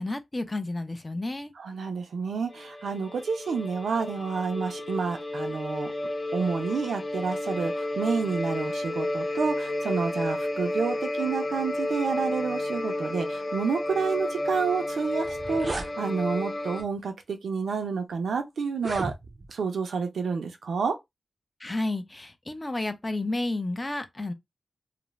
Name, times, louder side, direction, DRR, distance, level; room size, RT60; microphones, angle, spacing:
voice 1, 0.0-1.5 21.6-24.3, left 2 dB, 25° left, 0.5 m, -31 dB
voice 2, 1.6-5.9 6.3-19.1 19.5-21.0, right 5 dB, 90° right, 0.6 m, -29 dB
sound 1, 2.5-16.8, left 1 dB, 55° left, 0.9 m, -32 dB
sound 2, 14.8-14.9 15.2-15.9 16.8-17.0 17.7-17.8 18.7-19.6, right 2 dB, 40° right, 0.5 m, -35 dB
2.4 x 2.0 x 3.0 m
wide cardioid pair, 80°, 0 cm